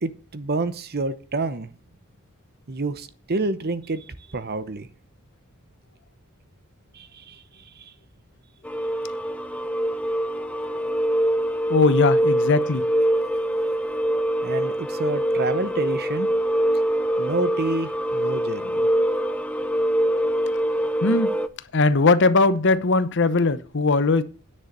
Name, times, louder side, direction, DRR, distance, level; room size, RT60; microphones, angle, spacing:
voice 1, 0.0-1.7 2.7-4.9 6.9-7.4 7.8-7.9 14.4-16.3 17.2-18.9, right 2 dB, 45° right, 0.9 m, -28 dB
sound 1, 8.6-21.5, right 1 dB, 5° left, 0.6 m, -24 dB
voice 2, 11.7-12.9 21.0-21.3 21.7-24.2, left 3 dB, 55° left, 0.8 m, -19 dB
9.9 x 6.6 x 6.6 m
head